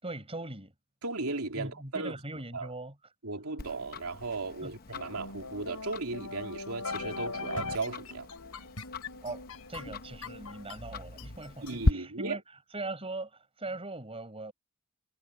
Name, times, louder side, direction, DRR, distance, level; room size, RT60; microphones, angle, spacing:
voice 1, 0.0-0.7 1.5-3.0 4.6-4.7 9.2-12.4 12.7-14.5, right 2 dB, 25° right, 5.6 m, -40 dB
voice 2, 1.0-2.1 2.5-2.7 3.2-8.3 11.6-12.4, right 3 dB, 80° right, 3.2 m, -36 dB
Tick-tock, 3.6-11.9, left 2 dB, 40° left, 0.9 m, -37 dB
sound 1, 4.9-11.8, left 3 dB, 90° left, 4.1 m, -41 dB
head